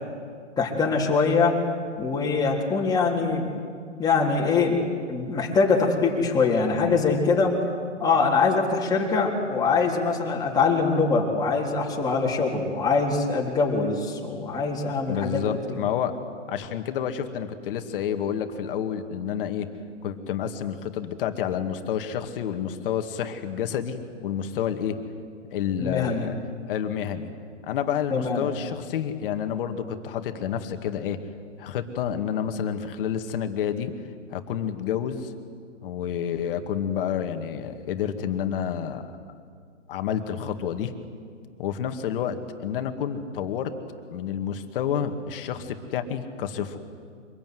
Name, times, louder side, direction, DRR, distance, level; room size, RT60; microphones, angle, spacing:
voice 1, 0.6-1.6 2.0-3.5 4.0-4.8 5.1-7.5 8.0-15.4 15.7-15.8 25.8-26.3 28.1-28.5, left 4 dB, 10° left, -2 dB, 3.6 m, -23 dB
voice 2, 15.1-16.2 16.5-19.7 20.0-25.0 25.5-26.4 26.7-27.3 27.7-31.2 31.6-33.9 34.3-35.3 35.8-39.0 39.9-40.9 41.6-43.7 44.1-46.8, left 8 dB, 45° left, 7 dB, 2.2 m, -29 dB
25.0 x 21.5 x 9.5 m, 2.2 s
hypercardioid pair, 145°, 38 cm